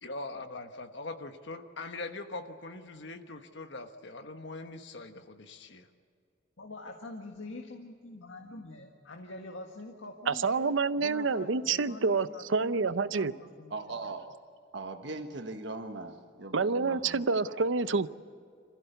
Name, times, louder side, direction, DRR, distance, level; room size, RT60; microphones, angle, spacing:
voice 1, 0.0-5.7, left 2 dB, 65° left, 1.2 m, -42 dB
voice 2, 6.6-14.1, left 2 dB, 90° left, 1.7 m, -46 dB
voice 3, 10.3-13.3 16.5-18.1, right 4 dB, 80° right, 0.7 m, -28 dB
voice 4, 13.7-14.3 14.7-17.5, right 3 dB, 65° right, 1.4 m, -40 dB
26.5 x 15.5 x 8.2 m
head